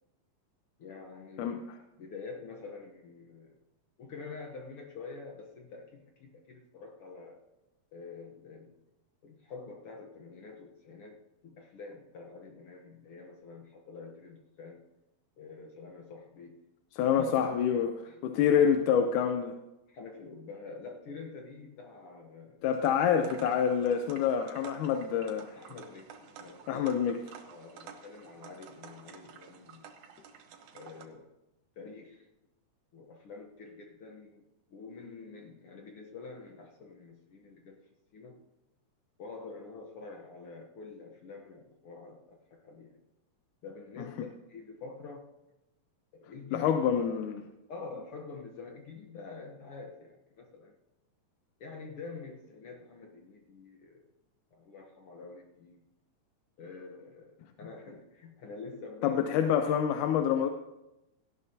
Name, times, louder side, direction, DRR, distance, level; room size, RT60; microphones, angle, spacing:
voice 1, 0.8-1.7 2.0-3.6 4.0-7.4 7.9-8.8 9.2-14.8 15.4-16.6 17.0-17.7 18.0-18.8 19.9-22.6 25.6-27.0 27.5-29.9 30.7-31.3 31.8-32.3 32.9-34.4 34.7-37.8 38.1-38.4 39.2-43.0 43.6-45.3 46.1-47.4 47.7-50.7 51.6-54.0 54.5-55.8 56.6-59.7, left 4 dB, 60° left, 1 dB, 1.6 m, -47 dB
voice 2, 1.4-1.8 16.9-19.6 22.6-25.6 26.7-27.2 44.0-44.1 46.5-47.4 59.0-60.5, left 8 dB, 90° left, 6 dB, 2.2 m, -27 dB
sound 1, 22.7-31.1, right 7 dB, 75° right, 2.5 m, -51 dB
17.5 x 14.0 x 2.8 m, 0.97 s
omnidirectional pair, 3.5 m